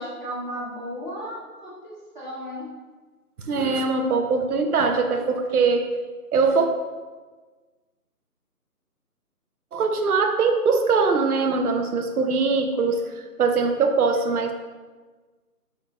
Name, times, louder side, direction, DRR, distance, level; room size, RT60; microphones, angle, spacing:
voice 1, 0.0-2.7, equal, 30° right, -8 dB, 1.1 m, -34 dB
voice 2, 3.4-5.9 6.3-6.7 9.7-13.0 13.4-14.5, right 4 dB, 70° right, 5 dB, 0.6 m, -22 dB
5.5 x 2.7 x 2.8 m, 1.4 s
figure-of-eight pair, 165°, 47 cm